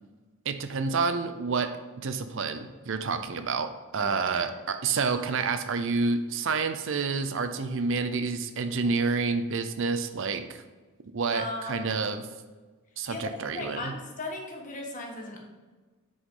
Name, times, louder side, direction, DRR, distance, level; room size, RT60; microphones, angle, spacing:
voice 1, 0.5-1.7 2.0-10.6 11.1-12.3 13.0-13.9, right 4 dB, 65° right, 9 dB, 0.6 m, -29 dB
voice 2, 4.0-4.6 11.3-12.0 13.1-15.4, left 2 dB, 40° left, 1 dB, 1.5 m, -37 dB
7.8 x 6.4 x 3.8 m, 1.3 s
head